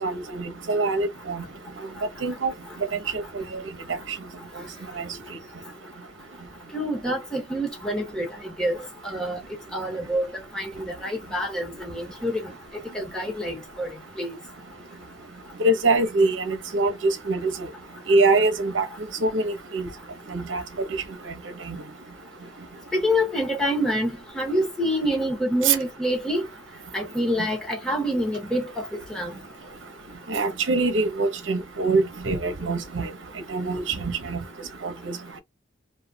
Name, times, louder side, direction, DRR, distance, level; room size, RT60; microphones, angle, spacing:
voice 1, 0.0-1.4 2.2-2.5 3.1-3.4 5.0-5.1 15.6-17.7 18.1-18.9 19.2-19.9 20.3-20.9 21.3-21.4 21.6-21.8 25.6-25.8 30.3-33.1 33.5-34.4 34.8-35.2, right 3 dB, 75° right, 0.8 m, -24 dB
voice 2, 6.7-8.3 8.6-8.8 9.0-9.4 9.7-12.5 12.9-14.4 22.9-24.1 24.3-26.5 26.9-28.8 29.1-29.4, equal, 5° left, 1.1 m, -27 dB
3.1 x 2.3 x 2.7 m
head